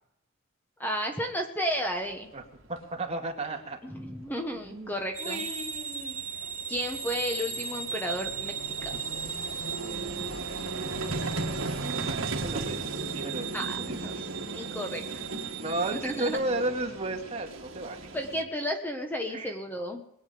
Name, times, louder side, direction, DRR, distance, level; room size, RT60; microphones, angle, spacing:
voice 1, 0.8-2.3 3.8-5.4 6.7-8.9 13.5-15.2 16.0-16.4 18.1-20.0, equal, 10° left, 3 dB, 1.2 m, -33 dB
Vehicle, 2.3-2.4 2.6-2.8 4.8-4.9 5.0-18.4, right 2 dB, 65° right, 1.9 m, -37 dB
voice 2, 2.7-3.8 4.6-4.9 5.2-6.4 9.8-10.5 11.7-14.1 15.5-18.1 19.3-19.5, right 2 dB, 30° right, 2 dB, 2.2 m, -34 dB
sound 1, 5.1-16.4, right 8 dB, 45° right, 3.2 m, -37 dB
22.0 x 8.9 x 5.1 m, 0.78 s
head